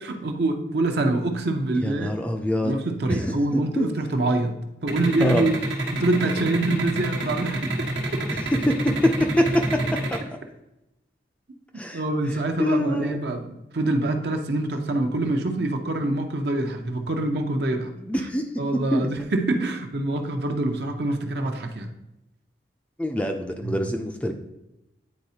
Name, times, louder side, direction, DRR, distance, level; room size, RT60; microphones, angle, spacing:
voice 1, 0.0-2.2 2.6-5.6 5.9-7.9 11.9-17.9 18.6-21.9 23.6-23.8, right 2 dB, 65° right, 5 dB, 0.7 m, -25 dB
voice 2, 1.8-2.8 3.1-3.2 3.5-3.9 5.2-5.4 8.6-8.7 9.4-9.5 11.8-12.0 12.6-13.2 18.0-18.4 18.9-19.1 23.0-24.3, equal, 5° left, 4 dB, 0.4 m, -25 dB
sound 1, 4.9-10.2, right 2 dB, 80° right, 1.1 m, -27 dB
9.6 x 4.1 x 2.8 m, 0.92 s
head